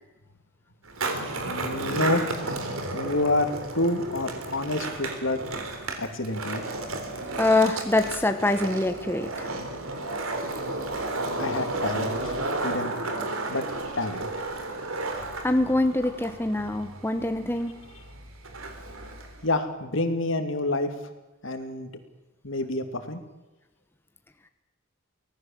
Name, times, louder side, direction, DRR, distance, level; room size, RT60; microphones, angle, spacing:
Skateboard, 0.8-19.5, right 2 dB, 80° right, 3.7 m, -33 dB
voice 1, 1.5-2.2 2.9-5.4 6.0-6.6 11.4-12.3 12.6-12.9 13.5-13.7 14.0-14.3 19.4-20.9 21.4-21.9 22.4-23.2, left 2 dB, 65° left, 7 dB, 2.7 m, -28 dB
voice 2, 7.4-9.5 15.4-17.7, left 2 dB, 10° left, 7 dB, 1.0 m, -24 dB
24.5 x 18.5 x 7.5 m, 1.1 s
head